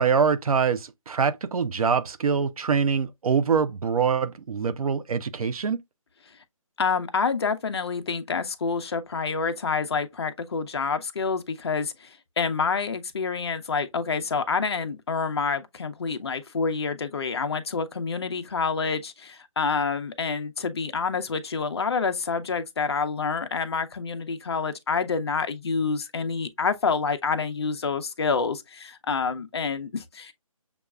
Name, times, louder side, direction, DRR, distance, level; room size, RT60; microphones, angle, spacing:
voice 1, 0.0-5.8, right 6 dB, 85° right, 0.5 m, -24 dB
voice 2, 6.8-30.3, left 5 dB, 45° left, 0.5 m, -28 dB
6.7 x 2.3 x 2.3 m
hypercardioid pair, 175°, 18 cm